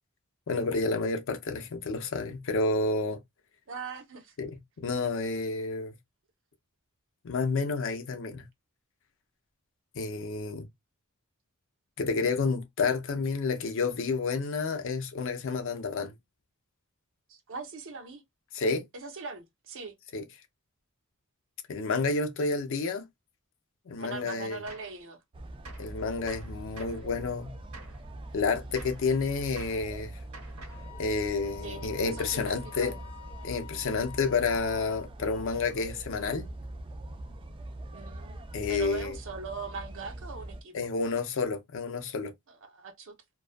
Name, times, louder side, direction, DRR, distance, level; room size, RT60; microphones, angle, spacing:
voice 1, 0.5-3.2 4.4-6.0 7.2-8.4 9.9-10.7 12.0-16.1 18.5-18.9 20.1-20.2 21.7-23.1 23.9-24.6 25.8-27.5 28.3-30.2 31.0-33.0 33.4-36.5 38.5-39.1 40.7-42.3, left 4 dB, 60° left, 0.5 m, -30 dB
voice 2, 3.7-4.3 17.3-18.2 18.9-20.0 24.0-25.2 31.6-33.0 37.9-38.4 38.7-40.9 42.5-43.1, right 4 dB, 60° right, 0.6 m, -41 dB
Gunshot gunfire, 24.7-25.0 25.6-25.9 26.3-27.1 27.7-28.0 28.7-29.1 29.6-29.9 30.3-30.9, right 2 dB, 80° right, 1.1 m, -48 dB
sound 1, 25.3-40.6, right 1 dB, 25° right, 0.3 m, -43 dB
Wind instrument woodwind instrument, 30.7-35.1, left 15 dB, 5° left, 0.7 m, -49 dB
2.3 x 2.2 x 2.4 m
head